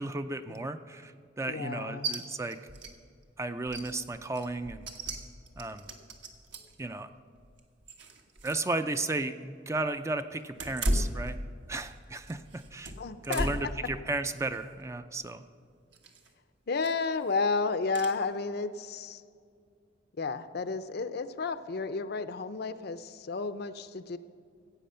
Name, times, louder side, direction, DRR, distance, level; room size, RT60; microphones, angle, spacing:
voice 1, 0.0-2.6 3.4-4.9 5.6-5.8 6.8-7.1 8.4-11.4 11.7-12.9 13.2-15.4, right 2 dB, 15° right, 9 dB, 0.4 m, -34 dB
voice 2, 1.5-2.1 13.0-13.7 16.7-19.2 20.2-24.2, left 4 dB, 55° left, 12 dB, 0.6 m, -32 dB
sound 1, 2.0-2.2 2.5-2.9 3.2-3.3 3.7-6.8 7.4-8.7 9.0-9.1 10.5-11.9 12.2-13.8 14.2-14.6 15.9-16.3 16.8-17.2 17.9-18.1, right 1 dB, 65° right, 1.4 m, -35 dB
15.5 x 8.5 x 5.6 m, 2.3 s
head